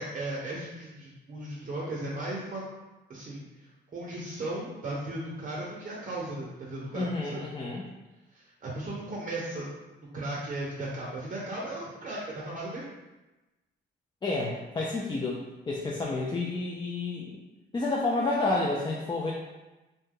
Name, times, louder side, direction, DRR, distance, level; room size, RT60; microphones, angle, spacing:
voice 1, 0.0-2.6 3.1-3.5 3.9-7.4 8.3-9.7 10.1-12.9, right 2 dB, 40° right, -5 dB, 0.7 m, -36 dB
voice 2, 6.9-7.8 14.2-15.4 15.7-17.4 17.7-19.3, left 2 dB, 20° left, -3 dB, 0.4 m, -30 dB
2.7 x 2.1 x 3.6 m, 1.1 s
cardioid pair, 90°, 20 cm